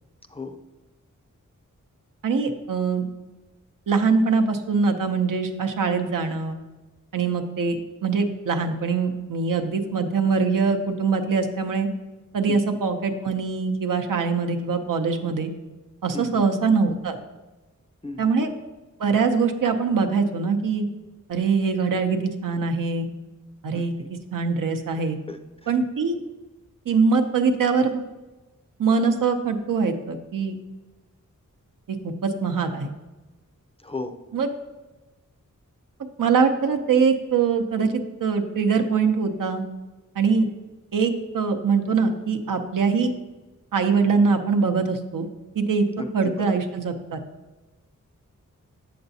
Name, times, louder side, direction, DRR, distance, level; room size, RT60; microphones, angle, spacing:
voice 1, 2.2-3.1 3.9-6.6 7.1-11.9 12.3-15.5 16.0-17.2 18.2-18.5 19.0-20.9 21.3-23.1 23.6-23.9 24.3-25.2 25.7-26.2 26.9-28.0 28.8-30.5 31.9-32.9 34.3-34.5 36.2-39.6 40.2-40.5 40.9-43.1 43.7-45.3 45.6-45.8 46.1-47.2, right 5 dB, 85° right, 5 dB, 0.7 m, -23 dB
voice 2, 16.1-16.4 18.0-18.3 23.7-24.1 25.3-25.7 33.8-34.2 46.0-46.6, left 3 dB, 20° left, 7 dB, 0.4 m, -35 dB
7.9 x 6.7 x 2.7 m, 1.1 s
wide cardioid pair, 95°, 32 cm